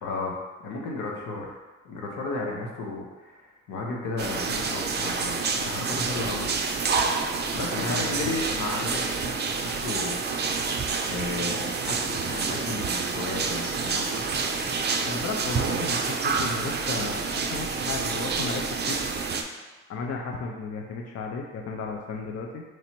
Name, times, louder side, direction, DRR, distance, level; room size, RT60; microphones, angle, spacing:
voice 1, 0.0-1.6 1.8-6.5 7.5-10.8 11.0-14.2, left 3 dB, 90° left, -1 dB, 0.8 m, -34 dB
sound 1, 4.2-19.4, right 4 dB, 35° right, 0.4 m, -28 dB
voice 2, 7.7-8.3 14.9-19.0 19.9-22.6, left 4 dB, 55° left, 1 dB, 0.6 m, -34 dB
3.1 x 2.8 x 4.3 m, 1.2 s
cardioid pair, 90°, 30 cm